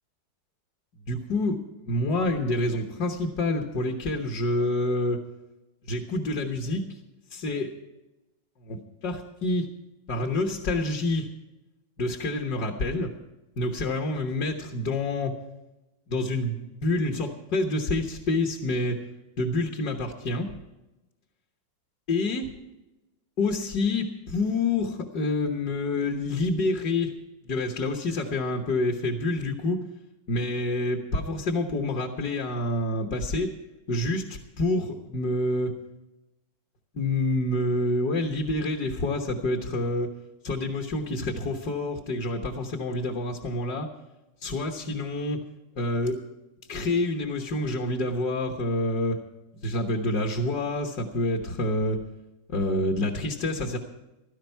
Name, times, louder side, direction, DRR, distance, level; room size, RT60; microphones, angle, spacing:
voice 1, 1.1-1.6 1.8-5.2 5.9-6.9 7.3-7.7 8.7-9.7 10.1-11.3 12.0-13.1 13.6-15.3 16.1-19.0 19.4-20.5 22.1-22.5 23.4-27.1 27.5-29.8 30.3-33.5 33.9-35.7 36.9-40.1 40.4-43.9 44.4-45.4 45.8-46.2 46.7-49.2 49.6-52.0 52.5-53.8, left 2 dB, 60° left, 2 dB, 1.8 m, -27 dB
16.5 x 13.0 x 4.6 m, 1.0 s
omnidirectional pair, 2.0 m